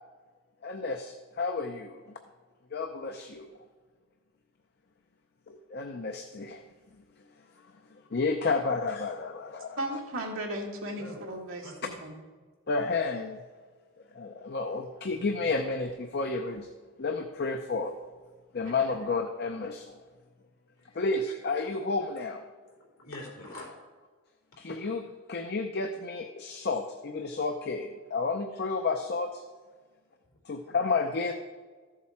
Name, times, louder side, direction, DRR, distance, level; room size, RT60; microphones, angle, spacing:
voice 1, 0.6-2.0 2.7-3.5 5.5-6.6 7.9-9.8 12.7-13.4 14.1-16.7 17.0-18.0 18.5-20.0 20.9-22.5 24.6-29.4 30.5-31.3, left 3 dB, 50° left, 6 dB, 0.6 m, -31 dB
voice 2, 9.8-12.1 18.8-18.9, right 1 dB, 70° right, 0 dB, 2.1 m, -36 dB
voice 3, 11.0-12.0 20.8-21.4 21.7-21.8 22.7-23.8 24.5-24.9 30.2-30.4, left 2 dB, 75° left, -2 dB, 3.8 m, -47 dB
14.0 x 7.4 x 4.4 m, 1.5 s
head